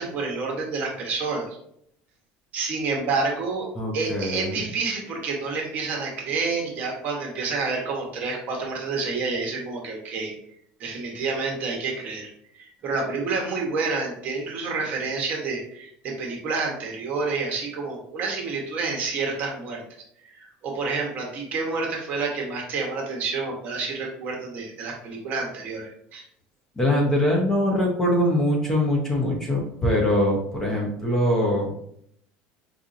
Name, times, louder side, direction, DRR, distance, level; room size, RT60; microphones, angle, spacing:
voice 1, 0.0-1.5 2.5-3.7 3.9-10.4 10.8-19.8 20.2-26.2, right 4 dB, 40° right, 0 dB, 1.0 m, -29 dB
voice 2, 3.8-4.6 26.8-31.7, left 1 dB, 10° left, -1 dB, 0.5 m, -23 dB
4.7 x 2.7 x 2.5 m, 0.70 s
cardioid pair, 170°, 4 cm